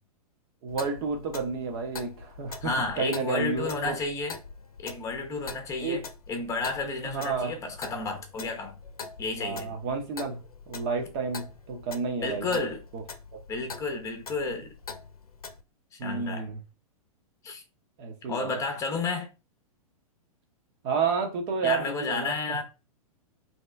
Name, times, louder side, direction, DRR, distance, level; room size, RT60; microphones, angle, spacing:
voice 1, 0.6-4.0 5.8-6.0 7.0-7.5 9.4-10.4 10.7-12.6 12.9-13.0 13.3-13.4 16.0-16.6 18.0-18.5 20.8-22.6, right 5 dB, 40° right, 1.2 m, -31 dB
Clock, 0.7-15.6, left 5 dB, 75° left, 0.7 m, -44 dB
voice 2, 2.6-4.4 4.8-8.7 9.2-9.7 12.2-12.8 13.5-14.7 15.9-16.4 17.4-17.6 18.3-19.3 21.6-22.6, left 3 dB, 15° left, 1.0 m, -31 dB
3.5 x 2.9 x 3.3 m
figure-of-eight pair, 105°, 19 cm